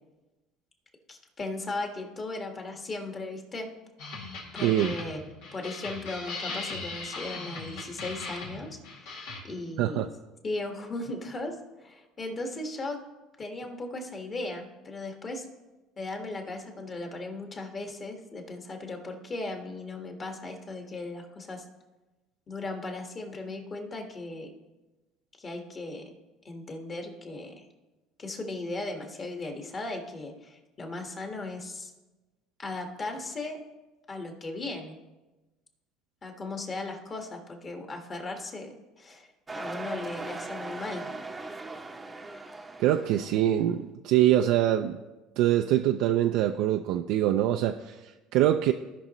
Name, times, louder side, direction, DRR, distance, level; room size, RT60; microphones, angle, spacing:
voice 1, 1.1-3.7 4.5-5.2 5.5-8.8 9.0-9.1 9.4-10.0 10.4-13.0 13.4-15.4 16.0-21.6 22.5-24.5 25.4-26.0 26.4-27.6 28.2-31.9 32.6-33.6 34.1-35.0 36.2-39.3 39.5-41.0, left 2 dB, 30° left, 3 dB, 1.6 m, -37 dB
sound 1, 4.0-9.4, left 3 dB, 80° left, 2.2 m, -39 dB
voice 2, 4.6-4.9 9.8-10.1 42.8-45.0 45.4-48.7, right 12 dB, 70° right, 5 dB, 0.4 m, -24 dB
sound 2, 39.5-43.6, right 2 dB, 15° right, 0.7 m, -39 dB
16.0 x 5.4 x 3.0 m, 1.1 s
supercardioid pair, 115°, 0 cm